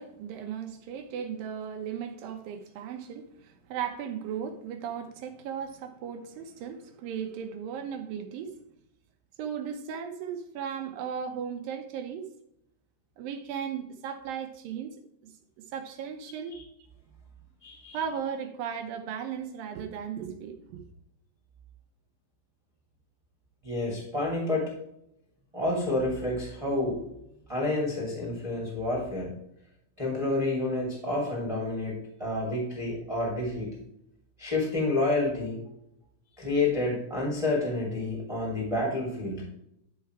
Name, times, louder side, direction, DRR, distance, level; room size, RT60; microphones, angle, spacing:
voice 1, 0.0-8.5 9.4-12.3 13.2-15.0 15.2-16.6 17.9-20.8, right 7 dB, 80° right, 2.1 m, -36 dB
voice 2, 17.6-18.1 23.6-24.7 25.5-27.0 27.5-29.3 30.0-33.7 34.4-35.6 36.4-39.4, left 2 dB, 10° right, 1.7 m, -29 dB
10.5 x 4.7 x 4.6 m
omnidirectional pair, 5.0 m